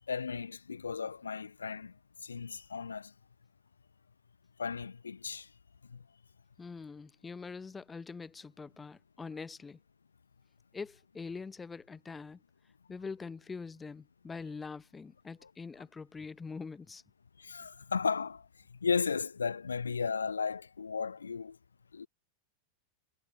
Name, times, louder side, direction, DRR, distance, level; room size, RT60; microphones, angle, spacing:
voice 1, 0.1-1.9 2.2-3.1 4.6-5.5 5.9-6.0 17.4-21.6 21.9-22.1, left 5 dB, 75° left, 1.4 m, -35 dB
voice 2, 6.6-9.8 10.7-12.4 12.9-17.0, left 4 dB, 15° left, 0.9 m, -44 dB
figure-of-eight pair, 90°, 0 cm